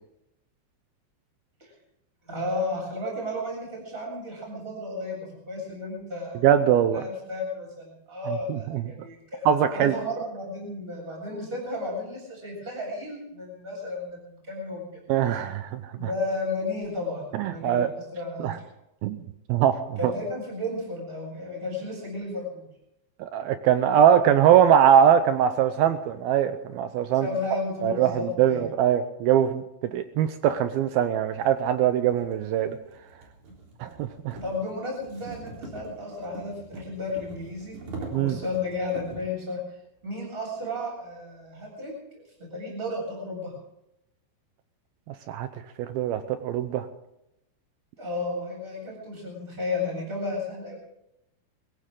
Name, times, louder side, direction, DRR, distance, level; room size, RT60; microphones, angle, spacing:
voice 1, 2.3-6.4 6.9-14.9 16.0-18.5 20.0-22.6 27.2-28.7 34.4-37.8 38.1-39.6 40.0-43.5 48.0-50.8, left 2 dB, 10° right, -2 dB, 7.7 m, -33 dB
voice 2, 6.4-7.0 8.2-8.8 9.5-9.9 15.1-15.9 17.3-17.9 18.4-18.5 19.0-19.2 19.5-19.7 20.0-20.1 23.2-27.3 27.8-32.8 33.8-34.4 38.1-38.4 45.3-45.5 45.8-46.9, right 9 dB, 85° right, 10 dB, 2.1 m, -22 dB
sound 1, 31.3-39.4, right 2 dB, 40° right, 4.7 m, -43 dB
22.0 x 16.5 x 3.8 m, 0.84 s
omnidirectional pair, 5.4 m